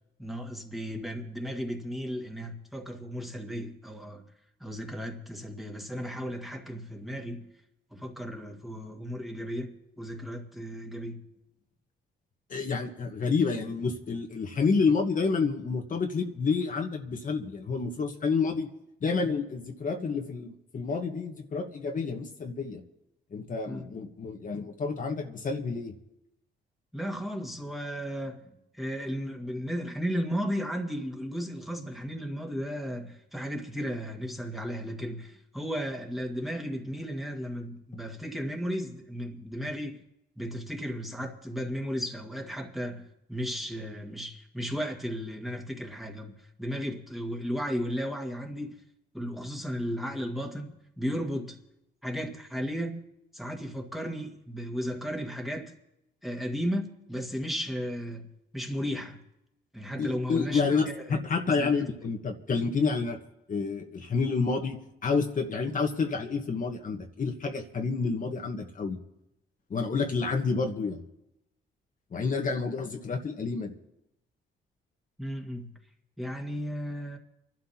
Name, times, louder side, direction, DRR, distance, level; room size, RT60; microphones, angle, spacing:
voice 1, 0.2-4.2 4.6-7.5 7.9-11.2 23.7-23.9 26.9-40.0 40.4-48.8 49.1-51.6 52.0-53.0 53.3-55.7 56.2-59.2 59.7-61.2 61.5-61.9 75.2-75.7 76.2-77.2, equal, ahead, 1.8 m, -35 dB
voice 2, 12.5-18.7 19.0-22.8 23.3-25.9 60.0-63.2 63.5-69.0 69.7-71.0 72.1-73.7, left 4 dB, 40° left, 1.3 m, -29 dB
29.0 x 12.0 x 2.9 m
cardioid pair, 90°, 20 cm